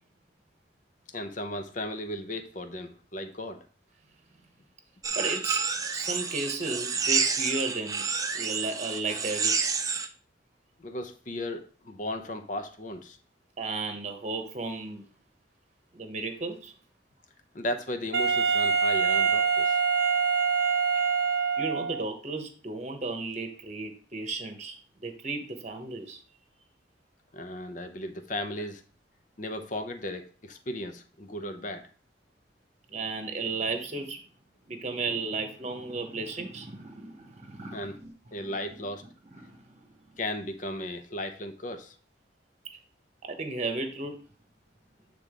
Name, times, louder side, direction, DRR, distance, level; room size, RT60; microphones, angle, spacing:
voice 1, 1.1-3.6 10.8-13.2 17.5-19.8 27.3-28.8 29.4-31.9 37.7-37.9 38.3-39.0 40.2-41.9, left 1 dB, 40° left, 0.7 m, -36 dB
sound 1, 5.0-10.1, right 5 dB, 20° right, 0.4 m, -29 dB
voice 2, 5.1-5.6 5.9-8.0 8.3-9.7 13.6-15.0 15.9-16.7 20.9-21.0 21.6-26.2 32.9-34.2 34.7-38.1 38.4-38.5 39.3-39.9 43.2-44.1, right 3 dB, 35° right, 1.0 m, -34 dB
Wind instrument woodwind instrument, 18.1-22.1, right 6 dB, 65° right, 0.7 m, -25 dB
8.5 x 3.7 x 3.7 m
head